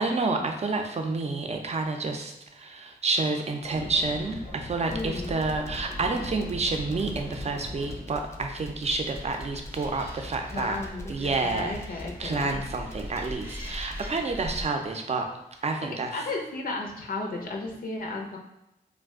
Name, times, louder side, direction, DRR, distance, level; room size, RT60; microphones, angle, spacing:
voice 1, 0.0-10.8 11.1-11.8 12.2-15.3 15.6-16.2, right 3 dB, 45° right, 4 dB, 0.5 m, -29 dB
sound 1, 3.6-8.0, left 2 dB, 85° left, 0.9 m, -41 dB
voice 2, 4.9-5.4 10.5-12.6 16.1-18.4, left 2 dB, 65° left, -1 dB, 0.6 m, -34 dB
sound 2, 4.9-14.2, left 1 dB, 15° left, 0.5 m, -41 dB
Animal, 8.8-14.6, equal, 15° right, 0.7 m, -42 dB
2.4 x 2.2 x 3.5 m, 0.89 s
cardioid pair, 45°, 16 cm